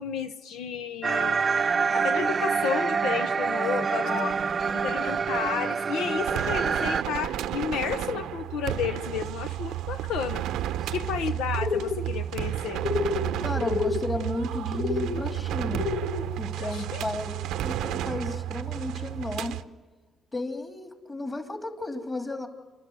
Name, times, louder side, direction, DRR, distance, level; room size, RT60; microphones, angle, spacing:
voice 1, 0.0-1.4 1.9-4.3 4.7-10.4 10.9-12.8 16.6-17.0, left 7 dB, 90° left, 10 dB, 0.7 m, -32 dB
sound 1, 1.0-7.0, right 5 dB, 40° right, 0.6 m, -26 dB
voice 2, 3.8-5.0 10.8-11.2 13.4-15.8 16.4-19.6 20.3-22.5, left 2 dB, 25° left, 6 dB, 2.9 m, -34 dB
sound 2, 4.3-19.6, right 12 dB, 90° right, 0.7 m, -32 dB
Cartoon Doves, 11.6-12.1 12.8-13.3 13.6-14.1 14.7-15.2 15.7-16.2, left 4 dB, 40° left, 1.4 m, -29 dB
28.5 x 12.0 x 9.4 m, 1.3 s
cardioid pair, 90°, 0 cm